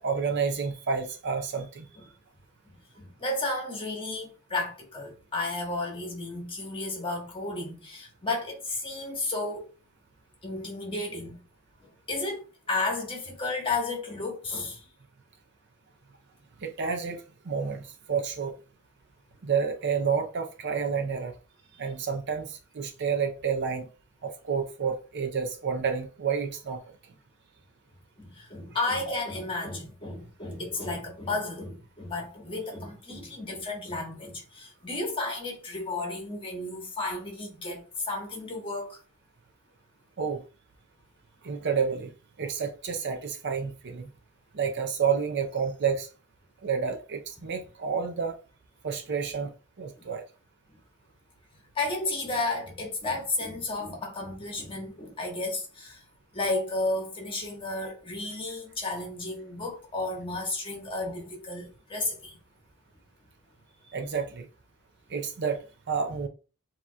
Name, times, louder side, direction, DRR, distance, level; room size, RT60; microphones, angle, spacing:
voice 1, 0.0-1.9 16.6-18.5 19.4-21.3 21.8-23.9 24.2-26.8 40.2-40.4 41.4-42.1 42.4-44.1 44.5-46.1 46.6-48.4 48.8-50.2 63.9-64.5 65.1-66.3, right 6 dB, 50° right, 0.5 m, -30 dB
voice 2, 3.0-9.7 10.4-11.4 11.8-14.9 28.2-39.0 51.7-56.0 56.3-62.4, left 2 dB, 25° left, 1.3 m, -33 dB
7.2 x 2.9 x 2.2 m
head